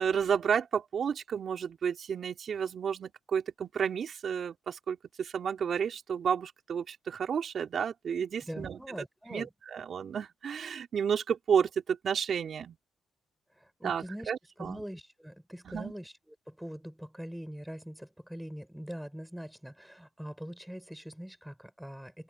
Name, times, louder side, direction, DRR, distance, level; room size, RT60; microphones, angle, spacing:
voice 1, 0.0-8.8 9.3-12.8 13.8-14.8 15.7-15.9, right 7 dB, 55° right, 5.2 m, -31 dB
voice 2, 8.4-9.5 13.5-22.2, equal, 5° right, 6.5 m, -43 dB
open air
cardioid pair, 90°, 0 cm